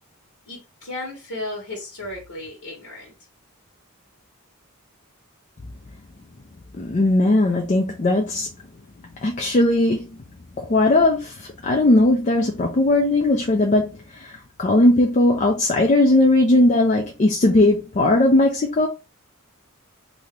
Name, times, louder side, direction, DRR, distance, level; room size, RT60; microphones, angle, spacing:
voice 1, 0.5-3.1, left 2 dB, 85° left, 1.2 m, -34 dB
voice 2, 6.8-8.5 9.2-10.2 10.6-18.9, left 2 dB, 35° left, 0.4 m, -18 dB
2.8 x 2.6 x 3.2 m
head